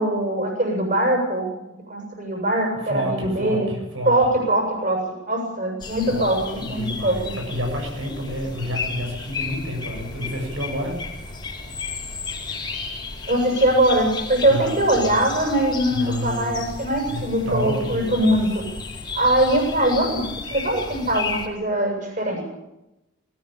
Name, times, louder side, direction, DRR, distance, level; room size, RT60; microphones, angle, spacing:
voice 1, 0.0-1.5 1.9-3.7 4.1-7.4 13.3-18.7 19.1-20.2 20.5-22.4, right 1 dB, 40° right, 1 dB, 7.6 m, -22 dB
voice 2, 2.8-4.1 6.1-6.3 6.6-11.0 14.5-15.2 15.9-16.7 17.1-18.3, equal, 80° right, 1 dB, 7.3 m, -29 dB
sound 1, 5.8-21.5, left 4 dB, 25° left, 5.0 m, -34 dB
20.0 x 19.5 x 8.8 m, 0.94 s
head